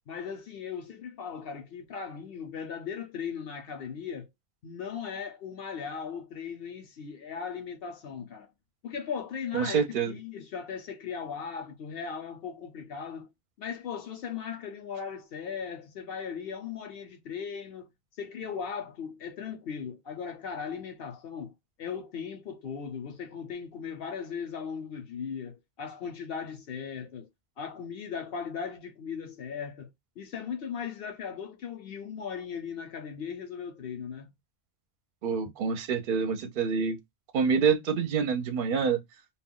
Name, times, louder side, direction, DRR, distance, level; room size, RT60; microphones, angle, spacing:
voice 1, 0.1-4.3 4.6-8.5 8.8-13.3 13.6-17.9 18.2-21.5 21.8-27.3 27.6-29.9 30.2-34.3, left 6 dB, 65° left, 0.8 m, -38 dB
voice 2, 9.5-10.1 35.2-37.0 37.3-39.0, right 6 dB, 60° right, 0.7 m, -27 dB
2.3 x 2.2 x 3.6 m
omnidirectional pair, 1.1 m